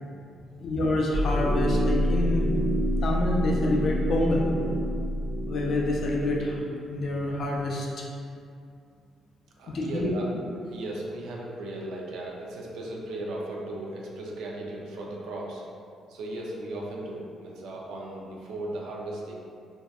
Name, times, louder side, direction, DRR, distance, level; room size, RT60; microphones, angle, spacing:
voice 1, 0.6-2.4 3.0-4.5 5.5-8.1 9.7-10.1, left 1 dB, 60° left, -1 dB, 0.4 m, -27 dB
sound 1, 1.1-6.6, equal, 10° left, 0.6 m, -27 dB
voice 2, 9.6-10.3 10.7-15.6 16.1-19.4, right 1 dB, 85° right, -2 dB, 0.4 m, -36 dB
2.6 x 2.2 x 2.3 m, 2.4 s
cardioid pair, 90°, 0 cm